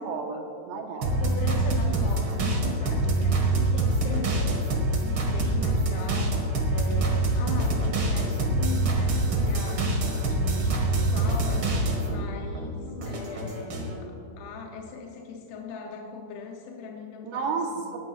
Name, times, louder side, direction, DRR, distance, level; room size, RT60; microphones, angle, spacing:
voice 1, 0.0-1.2 17.2-18.0, right 4 dB, 90° right, 2 dB, 3.3 m, -32 dB
voice 2, 0.9-17.9, left 5 dB, 75° left, 0 dB, 2.7 m, -40 dB
sound 1, 1.0-12.2 12.5-13.9, right 2 dB, 55° right, 1.4 m, -25 dB
19.5 x 12.5 x 2.4 m, 2.6 s
omnidirectional pair, 4.7 m